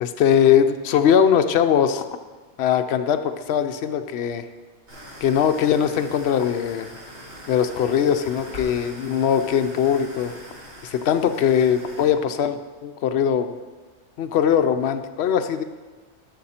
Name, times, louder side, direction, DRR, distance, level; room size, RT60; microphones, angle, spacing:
voice 1, 0.0-2.0 2.6-4.5 5.2-6.9 7.5-10.3 10.8-13.5 14.2-15.6, left 8 dB, 65° left, 9 dB, 0.8 m, -21 dB
sound 1, 4.9-12.1, equal, 65° right, 2.5 m, -42 dB
11.5 x 6.1 x 4.2 m, 1.4 s
omnidirectional pair, 1.2 m